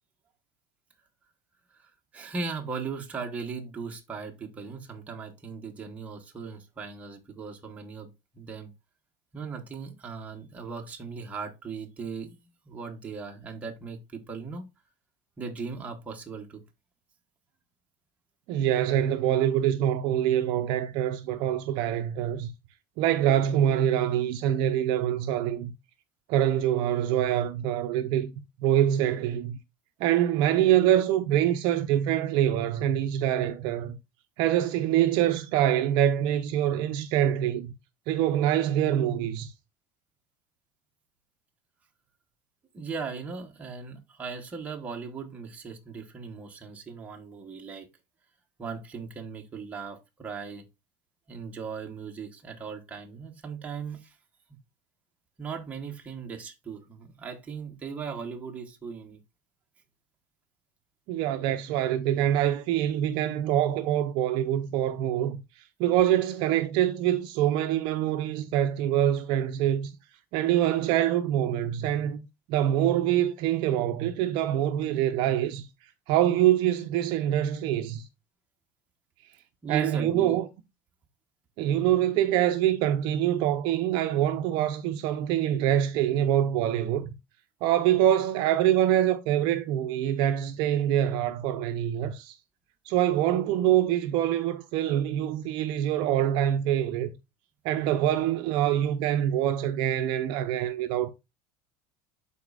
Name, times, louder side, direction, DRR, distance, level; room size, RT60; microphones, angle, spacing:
voice 1, 1.7-8.7 9.3-14.7 15.4-16.6 42.7-47.9 48.6-50.7 51.3-54.2 55.4-59.2 79.6-80.4, right 5 dB, 15° right, 1.0 m, -38 dB
voice 2, 18.5-22.5 23.0-25.7 26.3-28.3 28.6-29.6 30.0-34.0 34.4-37.7 38.1-39.5 61.1-65.4 65.8-69.9 70.3-75.7 76.1-78.0 79.7-80.5 81.6-87.1 87.6-92.4 92.9-97.1 97.6-101.1, right 11 dB, 50° right, 0.5 m, -25 dB
12.0 x 4.1 x 2.3 m
cardioid pair, 170°, 10 cm